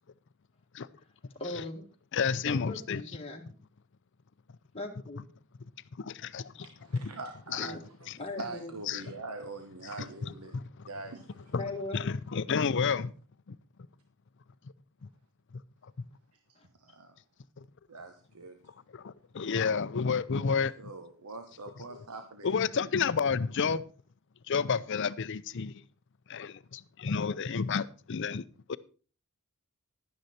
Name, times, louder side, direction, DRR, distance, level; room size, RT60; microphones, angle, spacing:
voice 1, 1.4-1.8 2.4-3.5 4.7-5.2 7.6-7.8 8.2-8.8 11.5-12.0 16.6-16.7, left 2 dB, 25° left, 1.8 m, -39 dB
voice 2, 2.1-3.0 5.9-6.7 6.9-7.0 7.5-7.7 8.9-9.0 10.0-10.9 11.5-11.6 11.9-13.1 13.5-13.6 15.0-15.1 15.5-16.1 17.6-17.7 18.6-20.9 21.9-22.0 22.4-23.8 24.5-25.8 26.3-28.8, left 5 dB, 55° left, 0.5 m, -31 dB
voice 3, 6.4-7.7 8.4-10.6 10.9-11.5 16.8-17.1 17.9-18.6 20.8-22.5, right 3 dB, 90° right, 1.1 m, -43 dB
11.5 x 9.7 x 4.2 m
head